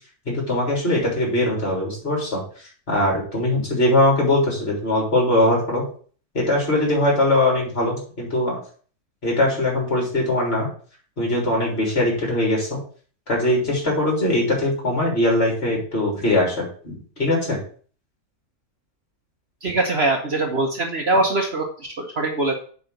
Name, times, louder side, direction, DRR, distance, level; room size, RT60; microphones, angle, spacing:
voice 1, 0.3-2.4 2.9-5.8 6.3-8.6 9.2-10.7 11.2-12.8 13.3-17.6, left 1 dB, 40° left, -2 dB, 3.7 m, -21 dB
voice 2, 19.6-22.5, right 2 dB, 45° right, 2 dB, 1.2 m, -22 dB
7.6 x 4.0 x 6.5 m, 0.43 s
omnidirectional pair, 1.6 m